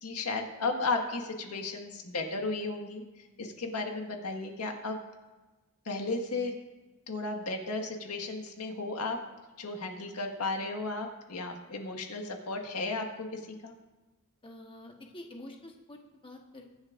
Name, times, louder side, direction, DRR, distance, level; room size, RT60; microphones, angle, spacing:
voice 1, 0.0-3.0 3.4-5.0 5.9-6.5 7.1-9.2 9.6-13.7, left 3 dB, 90° left, 2 dB, 1.7 m, -34 dB
voice 2, 14.4-16.0 16.2-16.7, left 1 dB, 25° left, 2 dB, 1.2 m, -47 dB
22.5 x 10.5 x 2.5 m, 1.2 s
head